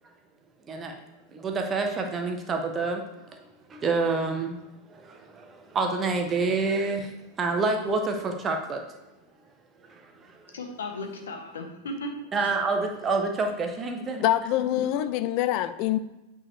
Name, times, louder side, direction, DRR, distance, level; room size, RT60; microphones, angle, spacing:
voice 1, 1.3-3.0 3.3-3.4 3.7-4.6 4.9-7.1 7.4-8.8 9.9-10.5 12.3-14.2, right 3 dB, 25° right, 4 dB, 0.9 m, -28 dB
voice 2, 10.5-12.5 15.0-15.1, left 1 dB, 65° left, 4 dB, 1.2 m, -36 dB
voice 3, 14.2-16.0, left 13 dB, 45° left, 12 dB, 0.4 m, -25 dB
8.6 x 4.6 x 3.3 m, 1.0 s
figure-of-eight pair, 90°, 0 cm